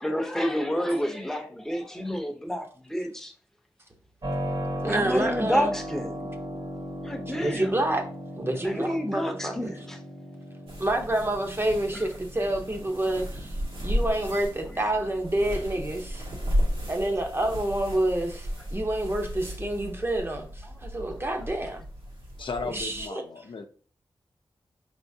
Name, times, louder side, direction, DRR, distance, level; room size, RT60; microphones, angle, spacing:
voice 1, 0.0-3.3 4.9-6.3 7.0-7.7 8.6-10.0 11.9-12.1 14.7-14.8 20.6-20.7, equal, 5° left, 0.8 m, -29 dB
Keyboard (musical), 4.2-16.9, equal, 55° right, 1.3 m, -38 dB
voice 2, 4.8-5.8 7.4-8.0 8.4-9.7 10.8-13.5 13.8-16.2 16.9-20.5 20.8-21.8 22.7-23.2, right 1 dB, 25° right, 0.8 m, -28 dB
sound 1, 10.7-23.1, equal, 80° right, 1.9 m, -34 dB
voice 3, 22.4-23.7, left 4 dB, 70° left, 0.6 m, -35 dB
5.5 x 3.5 x 2.7 m
wide cardioid pair, 95°, 9 cm